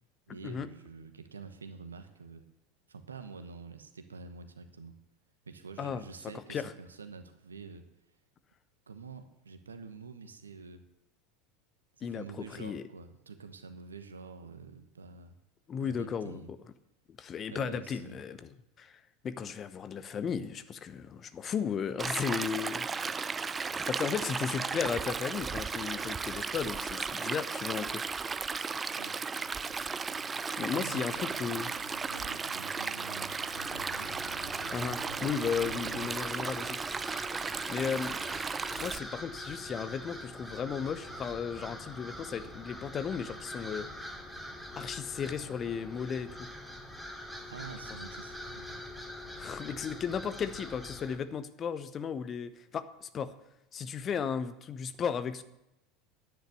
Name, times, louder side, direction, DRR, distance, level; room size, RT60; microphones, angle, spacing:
voice 1, 0.3-2.5 2.9-4.9 5.5-7.8 8.9-10.8 12.0-15.3 15.8-16.5 17.5-18.2 23.0-23.3 28.9-29.2 30.7-34.1 47.5-48.9, right 5 dB, 80° right, 8 dB, 1.1 m, -47 dB
voice 2, 12.0-12.8 15.7-16.6 17.1-22.9 23.9-28.0 30.6-31.7 34.7-36.8 37.7-38.3 38.8-43.9 44.8-46.5 49.4-53.3 53.7-55.4, left 7 dB, 35° left, 12 dB, 0.9 m, -35 dB
Stream, 22.0-39.0, right 5 dB, 20° right, 0.5 m, -35 dB
Motorcycle, 28.5-36.1, left 3 dB, 85° left, 0.8 m, -52 dB
sound 1, 33.5-51.2, left 1 dB, ahead, 2.3 m, -44 dB
10.5 x 9.5 x 6.8 m, 0.86 s
figure-of-eight pair, 75°, 0 cm